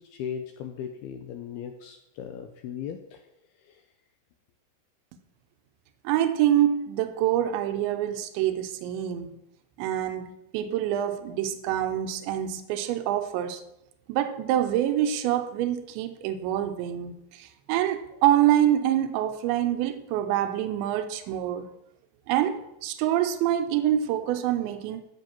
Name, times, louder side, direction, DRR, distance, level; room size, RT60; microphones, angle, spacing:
voice 1, 0.0-3.2 3.6-3.8, left 8 dB, 80° left, 2.4 m, -37 dB
voice 2, 6.0-9.4 9.8-13.6 14.1-21.7 22.3-25.0, right 11 dB, 85° right, 3.1 m, -26 dB
15.0 x 6.3 x 5.9 m
omnidirectional pair, 5.2 m